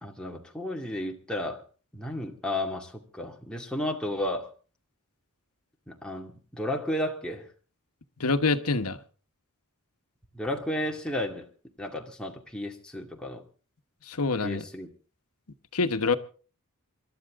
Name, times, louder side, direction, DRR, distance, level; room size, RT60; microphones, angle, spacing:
voice 1, 0.0-1.6 1.9-4.5 5.9-7.5 10.3-11.5 11.8-13.4 14.4-14.9, left 1 dB, 5° left, 2.1 m, -33 dB
voice 2, 8.2-9.0 14.1-14.6 15.7-16.2, left 3 dB, 80° left, 1.2 m, -25 dB
27.0 x 12.5 x 3.6 m
head